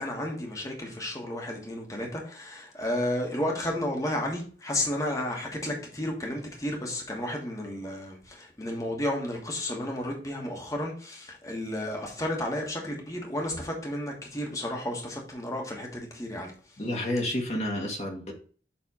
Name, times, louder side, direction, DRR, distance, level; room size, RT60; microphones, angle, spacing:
voice 1, 0.0-16.8, left 1 dB, 20° left, 1.4 m, -32 dB
voice 2, 16.8-18.3, left 1 dB, 40° left, 1.4 m, -30 dB
7.1 x 3.4 x 4.9 m
head